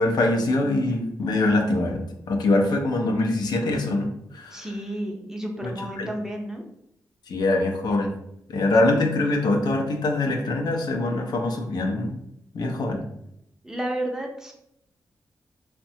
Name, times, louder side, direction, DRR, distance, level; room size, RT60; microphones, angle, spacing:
voice 1, 0.0-4.7 5.6-5.7 6.0-6.1 7.3-8.1 8.5-12.2 12.5-13.0, left 2 dB, 70° left, 2 dB, 0.5 m, -23 dB
voice 2, 4.5-6.7 13.6-14.5, right 1 dB, 5° right, 0 dB, 0.6 m, -31 dB
2.7 x 2.1 x 2.7 m, 0.77 s
cardioid pair, 60°, 7 cm